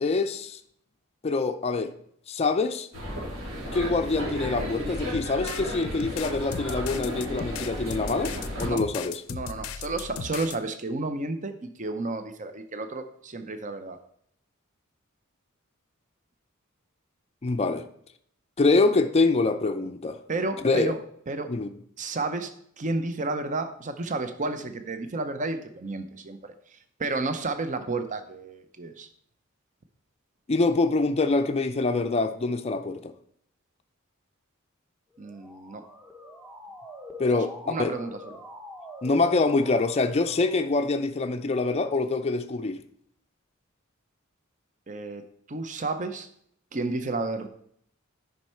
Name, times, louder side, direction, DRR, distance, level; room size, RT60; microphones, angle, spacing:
voice 1, 0.0-0.6 1.2-1.9 2.3-2.9 3.7-9.2 17.4-17.9 18.6-20.2 20.6-21.0 21.5-21.7 30.5-33.1 37.2-37.9 39.0-42.8, left 3 dB, 30° left, 0.4 m, -25 dB
sound 1, 2.9-8.7, equal, 70° right, 3.3 m, -34 dB
sound 2, 5.1-10.6, left 6 dB, 90° left, 0.5 m, -37 dB
voice 2, 9.3-14.0 20.3-21.0 21.3-21.5 22.0-22.5 22.8-29.1 35.2-35.8 37.3-38.2 44.9-45.2 45.5-46.3 46.7-47.5, right 3 dB, 35° right, 0.7 m, -31 dB
Motor vehicle (road) / Siren, 35.1-41.0, left 1 dB, 5° right, 0.8 m, -45 dB
9.5 x 5.4 x 4.4 m
head